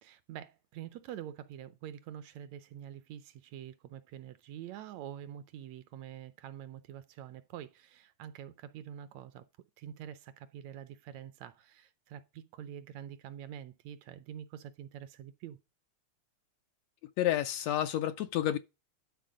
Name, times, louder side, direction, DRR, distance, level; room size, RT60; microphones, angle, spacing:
voice 1, 0.0-9.5 9.8-15.6, right 10 dB, 75° right, 1.8 m, -46 dB
voice 2, 17.2-18.6, left 12 dB, 75° left, 1.6 m, -30 dB
11.5 x 4.2 x 5.1 m
omnidirectional pair, 3.4 m